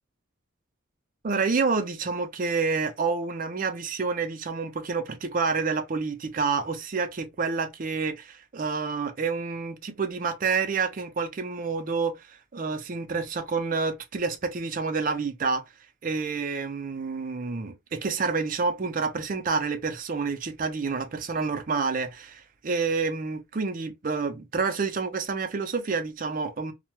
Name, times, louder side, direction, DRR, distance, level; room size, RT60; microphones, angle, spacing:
voice 1, 1.2-15.6 16.0-26.7, right 4 dB, 45° right, 0.4 m, -28 dB
2.2 x 2.1 x 2.9 m
head